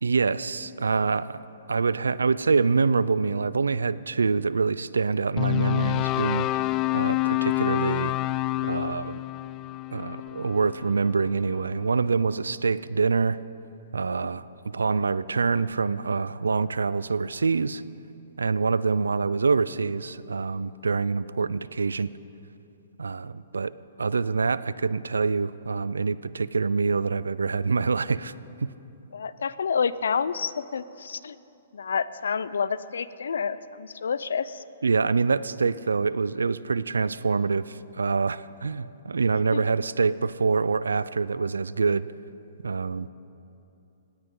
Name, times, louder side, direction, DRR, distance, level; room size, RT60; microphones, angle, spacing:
voice 1, 0.0-1.4 1.7-6.6 6.9-8.1 8.6-9.2 9.9-13.4 13.9-14.4 14.7-17.8 18.4-22.1 23.0-28.3 28.6-28.7 34.8-42.1 42.6-43.1, right 4 dB, 90° right, 17 dB, 0.4 m, -25 dB
sound 1, 5.4-11.6, left 18 dB, 30° left, 0.3 m, -28 dB
voice 2, 29.1-31.4 31.7-34.6 39.5-39.6, left 6 dB, 80° left, 16 dB, 0.5 m, -29 dB
19.0 x 17.0 x 3.8 m, 2.8 s
hypercardioid pair, 135°, 0 cm